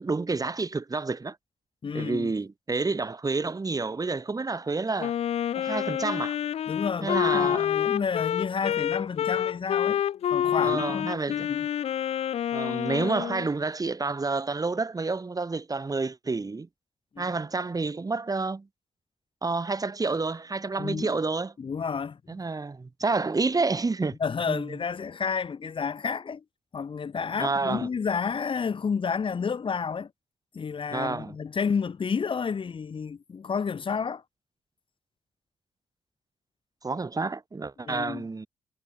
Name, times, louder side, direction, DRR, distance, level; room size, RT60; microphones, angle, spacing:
voice 1, 0.0-1.4 1.9-5.1 5.5-6.4 7.0-7.7 10.4-11.5 12.5-16.7 17.2-18.7 19.4-21.5 22.3-24.2 24.5-24.6 27.4-27.9 30.9-31.4 36.8-38.5, right 3 dB, 35° right, 7.8 m, -29 dB
voice 2, 1.8-2.3 6.7-10.0 10.3-11.7 17.1-17.3 20.8-21.1 21.6-22.2 24.2-26.4 26.7-30.1 30.5-34.2 37.8-38.3, left 6 dB, 55° left, 6.3 m, -30 dB
Wind instrument woodwind instrument, 5.0-13.5, left 10 dB, 75° left, 2.1 m, -28 dB
supercardioid pair, 55°, 11 cm